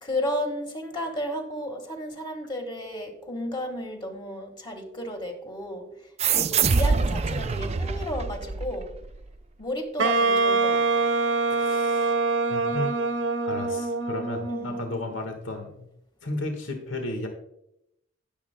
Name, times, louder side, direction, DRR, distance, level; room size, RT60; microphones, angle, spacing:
voice 1, 0.0-5.9 6.3-8.9 9.6-11.1 14.5-14.7, left 1 dB, 25° left, 4 dB, 1.6 m, -33 dB
sound 1, 6.2-9.2, right 5 dB, 35° right, 0.4 m, -25 dB
Wind instrument woodwind instrument, 10.0-15.0, right 3 dB, 80° right, 0.9 m, -24 dB
voice 2, 11.5-12.1 12.5-13.0 13.4-15.9 16.2-17.3, left 2 dB, 90° left, 4 dB, 1.5 m, -34 dB
17.5 x 7.2 x 2.2 m, 0.81 s
head